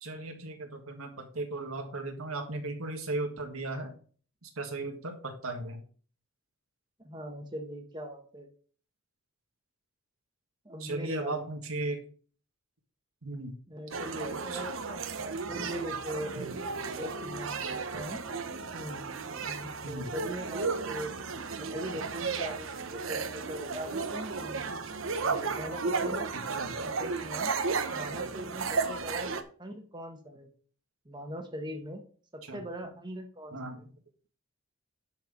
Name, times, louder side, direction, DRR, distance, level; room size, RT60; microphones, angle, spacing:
voice 1, 0.0-3.9 4.4-5.8 10.8-12.0 13.2-13.6 14.5-14.6 19.8-20.1 26.3-26.9 32.4-32.6 33.5-33.9, right 2 dB, 90° right, 4 dB, 1.8 m, -36 dB
voice 2, 7.0-8.5 10.6-11.5 13.7-16.6 17.0-18.2 18.7-21.2 21.6-24.7 25.2-26.3 26.7-27.5 27.9-29.3 29.6-30.5 31.0-32.0 32.3-33.8, equal, 20° right, 4 dB, 1.4 m, -41 dB
sound 1, 13.9-29.4, right 4 dB, 70° right, 0.9 m, -34 dB
10.5 x 4.6 x 5.3 m, 0.43 s
head